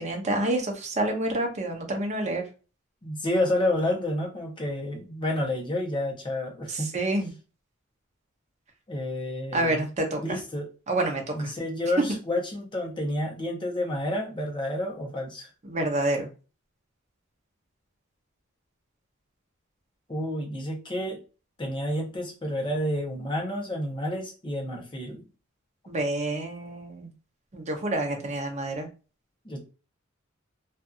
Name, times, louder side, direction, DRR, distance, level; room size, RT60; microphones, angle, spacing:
voice 1, 0.0-2.4 6.7-7.3 9.5-10.4 10.9-11.5 15.6-16.3 25.9-27.1 27.5-28.9, right 1 dB, 35° right, 2 dB, 0.7 m, -28 dB
voice 2, 3.0-6.9 8.9-9.8 10.2-10.7 11.3-15.5 20.1-21.2 21.6-25.2 29.4-29.6, left 1 dB, 25° left, 0 dB, 0.8 m, -29 dB
2.6 x 2.4 x 2.4 m, 0.33 s
head